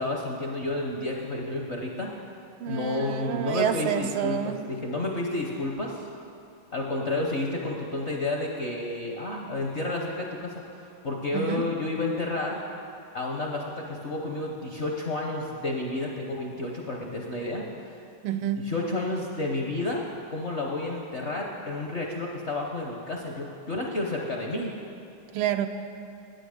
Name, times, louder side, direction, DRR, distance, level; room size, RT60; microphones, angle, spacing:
voice 1, 0.0-2.1 2.7-6.1 6.7-12.6 13.1-17.7 18.7-20.0 20.3-24.7, left 2 dB, 50° left, -1 dB, 0.8 m, -31 dB
voice 2, 2.6-4.6 11.3-11.7 18.2-18.7 25.3-25.7, right 9 dB, 85° right, 8 dB, 1.5 m, -28 dB
11.0 x 9.1 x 6.5 m, 2.5 s
omnidirectional pair, 2.3 m